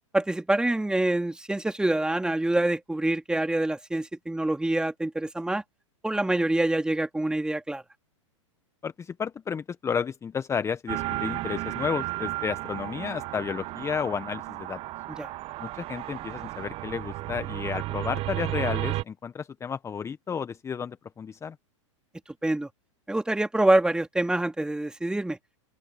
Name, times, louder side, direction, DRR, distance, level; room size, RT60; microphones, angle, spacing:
voice 1, 0.1-5.6 6.0-7.8 15.1-15.3 22.4-22.7 23.1-25.4, right 1 dB, 5° right, 2.8 m, -26 dB
voice 2, 8.8-14.8 15.6-21.5, left 6 dB, 15° left, 1.2 m, -32 dB
sound 1, 10.9-19.0, right 18 dB, 35° right, 1.0 m, -33 dB
open air
hypercardioid pair, 105°, 17 cm